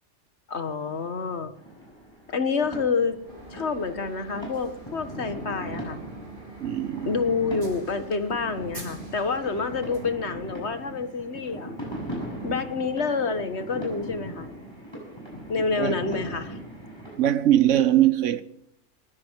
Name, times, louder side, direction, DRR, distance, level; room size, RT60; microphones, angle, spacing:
voice 1, 0.5-1.5 2.3-3.3 3.5-6.0 7.1-11.7 12.4-14.5 15.5-16.6, left 4 dB, 60° left, 1.8 m, -28 dB
sound 1, 1.5-17.2, right 1 dB, 20° left, 6.8 m, -39 dB
sound 2, 3.3-10.0, right 2 dB, 40° right, 3.6 m, -45 dB
voice 2, 6.6-7.1 15.8-16.0 17.2-18.4, right 12 dB, 75° right, 1.2 m, -21 dB
19.5 x 14.5 x 4.7 m
omnidirectional pair, 1.3 m